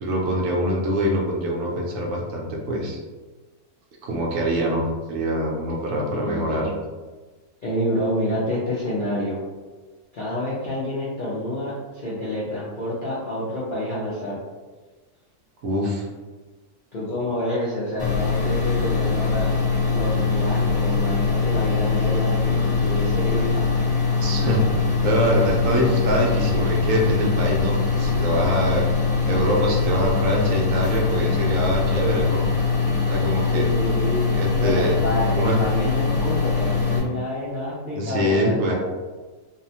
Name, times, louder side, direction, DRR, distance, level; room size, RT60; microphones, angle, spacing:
voice 1, 0.0-3.0 4.0-6.7 15.6-16.1 24.2-24.6 25.0-28.9 29.3-32.5 33.1-33.7 34.3-35.0 35.3-35.6 38.0-38.8, equal, 70° right, -2 dB, 0.9 m, -24 dB
voice 2, 6.1-6.8 7.6-9.4 10.1-14.4 16.9-19.5 19.9-23.6 33.5-34.2 34.6-38.7, left 1 dB, 55° left, -9 dB, 0.5 m, -28 dB
sound 1, 18.0-37.0, left 4 dB, 10° right, 0.3 m, -22 dB
2.6 x 2.1 x 2.7 m, 1.3 s
omnidirectional pair, 1.5 m